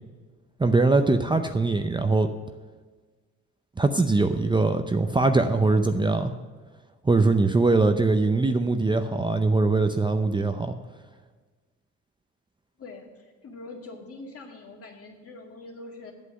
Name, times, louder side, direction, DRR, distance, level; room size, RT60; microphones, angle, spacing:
voice 1, 0.6-2.3 3.8-6.3 7.0-10.7, right 3 dB, 15° right, 7 dB, 0.6 m, -22 dB
voice 2, 12.8-16.1, left 2 dB, 50° left, 0 dB, 2.3 m, -43 dB
8.4 x 7.6 x 7.7 m, 1.4 s
cardioid pair, 90°, 30 cm